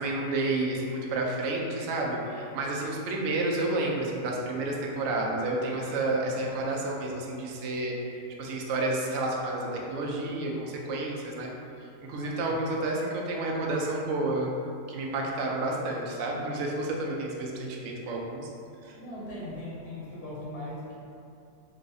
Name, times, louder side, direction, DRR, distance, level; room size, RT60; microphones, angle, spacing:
voice 1, 0.0-11.5 12.0-14.5 14.9-18.5 18.8-19.0, right 2 dB, 75° right, -1 dB, 0.7 m, -30 dB
voice 2, 5.8-6.5 12.2-12.6 18.9-20.9, left 1 dB, 70° left, -8 dB, 1.2 m, -40 dB
3.8 x 2.3 x 2.7 m, 2.6 s
omnidirectional pair, 1.7 m